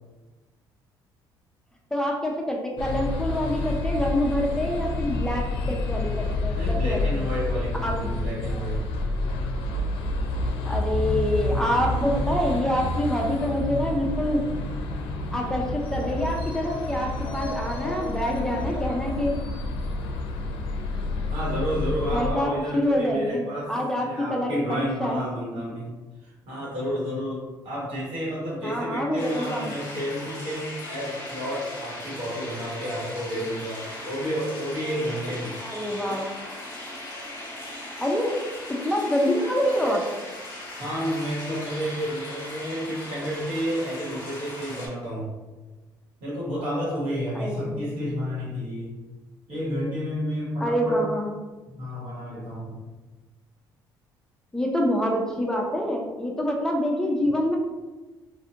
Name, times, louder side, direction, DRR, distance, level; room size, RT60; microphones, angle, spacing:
voice 1, 1.9-7.1 7.8-8.0 10.6-14.4 15.3-19.4 22.1-25.2 28.6-29.7 35.6-36.3 38.0-38.4 38.7-40.1 47.3-47.9 50.6-51.3 54.5-57.6, equal, 5° left, -1 dB, 0.3 m, -26 dB
sound 1, 2.8-22.3, left 2 dB, 90° left, 0.4 m, -29 dB
voice 2, 6.5-8.8 21.3-23.7 24.0-25.9 26.2-35.5 39.6-40.0 40.8-45.3 46.2-49.0 49.5-51.0 51.8-52.8, equal, 75° right, -6 dB, 1.3 m, -31 dB
sound 2, 29.2-44.9, left 1 dB, 30° left, 0.9 m, -38 dB
2.4 x 2.4 x 2.8 m, 1.2 s
cardioid pair, 130°, 9 cm